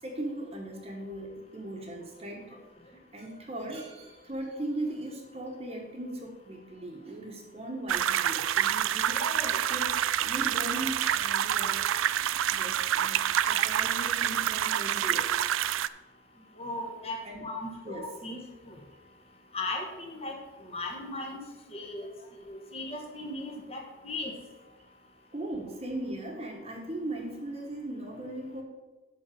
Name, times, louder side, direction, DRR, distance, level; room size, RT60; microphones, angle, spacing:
voice 1, 0.0-2.6 3.1-9.2 9.6-9.9 10.2-11.8 12.5-15.3 17.2-17.5 17.8-18.2 22.1-22.4 25.3-28.6, right 1 dB, 30° right, 1 dB, 1.2 m, -38 dB
sound 1, 7.9-15.9, right 10 dB, 90° right, 0.4 m, -27 dB
voice 2, 9.0-9.6 16.6-17.2 17.4-18.4 18.6-18.8 19.5-20.4 20.7-21.4 21.7-22.1 22.4-24.3, left 2 dB, 30° left, 0 dB, 1.4 m, -37 dB
11.5 x 4.0 x 6.8 m, 1.2 s
head